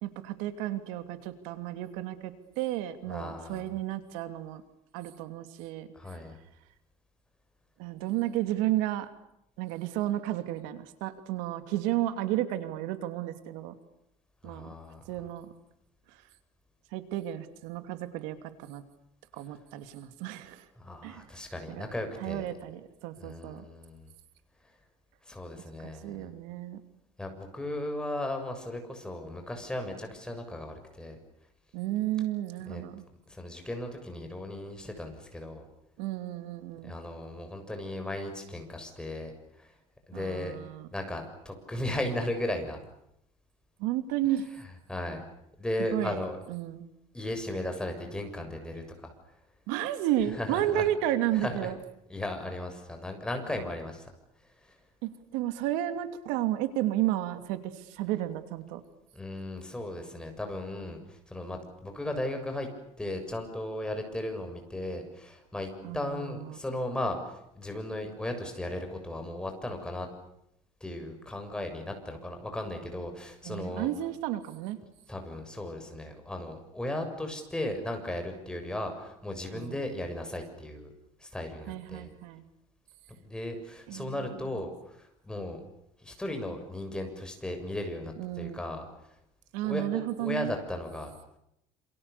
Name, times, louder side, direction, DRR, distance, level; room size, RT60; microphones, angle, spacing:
voice 1, 0.0-4.6 4.9-5.9 7.8-9.1 9.6-13.7 14.4-14.7 15.1-15.5 16.1-16.2 16.9-18.8 19.3-20.7 21.0-21.3 21.7-21.9 22.2-23.6 25.8-26.8 31.7-33.0 36.0-36.9 40.1-40.9 43.8-44.5 45.9-46.2 46.5-46.9 49.7-51.8 55.0-58.8 65.8-66.6 73.4-74.8 79.5-79.8 81.7-82.4 83.9-84.4 88.2-88.6 89.5-90.5, right 13 dB, 90° right, 9 dB, 2.9 m, -32 dB
voice 2, 3.1-3.6 5.9-6.4 14.4-15.0 20.8-22.5 23.2-24.1 25.2-26.3 27.2-31.2 32.7-32.8 33.3-35.6 36.8-39.7 40.1-40.6 40.9-42.8 44.9-45.2 45.6-46.4 47.1-49.1 50.4-50.9 51.3-51.7 52.1-54.1 54.6-54.8 59.1-62.7 63.0-70.1 70.8-73.9 75.1-80.9 81.2-82.1 83.2-85.6 86.0-88.9 89.6-91.1, left 1 dB, 5° left, 5 dB, 7.0 m, -36 dB
28.5 x 28.5 x 6.9 m, 0.80 s
cardioid pair, 140°, 12 cm